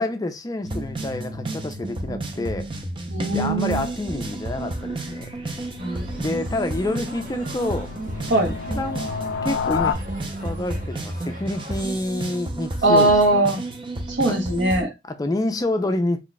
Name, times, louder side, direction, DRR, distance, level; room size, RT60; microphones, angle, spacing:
voice 1, 0.0-2.7 3.3-5.7 6.2-7.9 8.8-9.0 9.4-10.0 10.4-13.1 14.3-14.4 15.0-16.2, left 2 dB, 20° left, 0.4 m, -28 dB
sound 1, 0.6-14.8, right 2 dB, 30° right, 0.6 m, -32 dB
voice 2, 3.1-3.9 5.8-6.3 8.3-8.5 12.8-13.6 14.1-14.9, right 2 dB, 80° right, 1.0 m, -20 dB
sound 2, 4.4-9.9, left 6 dB, 90° left, 0.4 m, -32 dB
sound 3, 5.8-11.8, right 1 dB, 50° right, 1.4 m, -43 dB
3.0 x 2.3 x 4.0 m
head